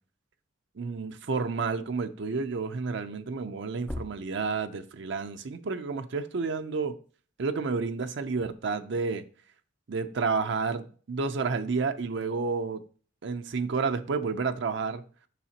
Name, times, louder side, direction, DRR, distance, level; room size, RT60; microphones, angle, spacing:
voice 1, 0.8-7.0 7.4-9.2 9.9-12.8 13.2-15.0, right 4 dB, 65° right, 0.5 m, -30 dB
sound 1, 3.5-3.6 3.8-4.9 7.9-8.5, left 1 dB, 5° left, 0.3 m, -41 dB
7.0 x 5.7 x 2.8 m
head